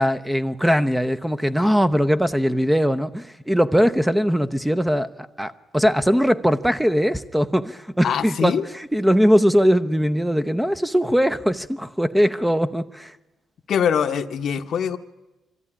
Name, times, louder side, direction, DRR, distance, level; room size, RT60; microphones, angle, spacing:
voice 1, 0.0-5.1 5.4-13.1, equal, 5° right, 0.8 m, -20 dB
voice 2, 8.0-8.6 13.7-15.0, left 8 dB, 65° left, 0.9 m, -23 dB
24.0 x 14.0 x 9.9 m
cardioid pair, 90°, 0 cm